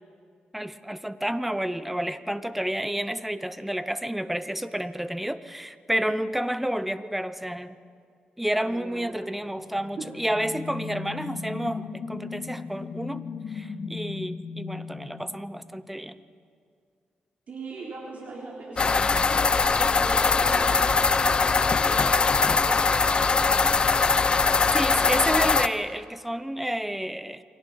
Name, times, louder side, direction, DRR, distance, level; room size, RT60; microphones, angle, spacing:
voice 1, 0.5-7.7 8.4-16.2 24.7-27.4, right 1 dB, 5° right, 12 dB, 0.8 m, -30 dB
voice 2, 8.4-9.6 10.0-10.2 17.5-22.8 23.3-23.8, right 3 dB, 55° right, -3 dB, 3.6 m, -41 dB
sound 1, 9.6-16.0, left 5 dB, 75° left, 2.4 m, -37 dB
sound 2, 18.8-25.7, left 4 dB, 30° left, 0.8 m, -21 dB
29.0 x 23.0 x 5.7 m, 2.2 s
wide cardioid pair, 135°, 3 cm